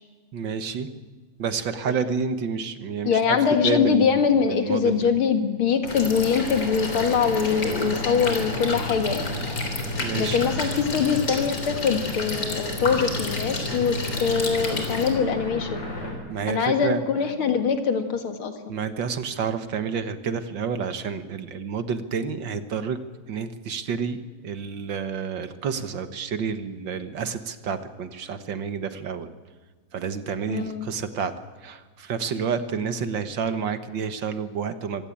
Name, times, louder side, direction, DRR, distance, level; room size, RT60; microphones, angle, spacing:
voice 1, 0.3-0.9 1.4-3.4 3.6-4.2 4.5-5.1 10.0-10.4 16.3-17.0 18.7-23.0 23.3-29.3 29.9-31.3 31.6-35.1, right 6 dB, 65° right, 10 dB, 1.9 m, -29 dB
voice 2, 3.0-9.3 10.2-15.8 16.5-18.5 30.5-30.8, left 6 dB, 85° left, 6 dB, 2.8 m, -23 dB
sound 1, 5.8-16.1, left 2 dB, 60° left, 6.5 m, -34 dB
sound 2, 5.9-15.1, left 2 dB, 45° left, 4.0 m, -31 dB
25.5 x 16.5 x 8.7 m, 1.4 s
omnidirectional pair, 2.2 m